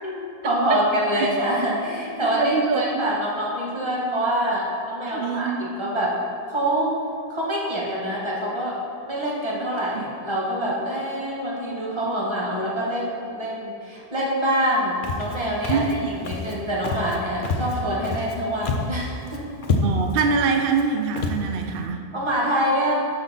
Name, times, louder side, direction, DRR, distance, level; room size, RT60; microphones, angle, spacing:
voice 1, 0.0-6.2 6.5-6.9 7.3-8.8 9.1-19.4 22.1-22.9, equal, 25° right, -5 dB, 1.6 m, -25 dB
voice 2, 2.3-3.0 5.1-5.6 9.9-10.0 15.7-16.3 19.8-22.0, right 5 dB, 60° right, 4 dB, 0.8 m, -24 dB
Walk footsteps, 15.0-15.4 15.6-15.9 16.2-16.5 16.8-17.2 17.4-18.3 18.6-19.0 19.3-19.4 19.6-20.2 20.7-20.8 21.2-21.4, left 3 dB, 55° left, 0.9 m, -26 dB
12.0 x 5.2 x 4.1 m, 2.5 s
omnidirectional pair, 1.1 m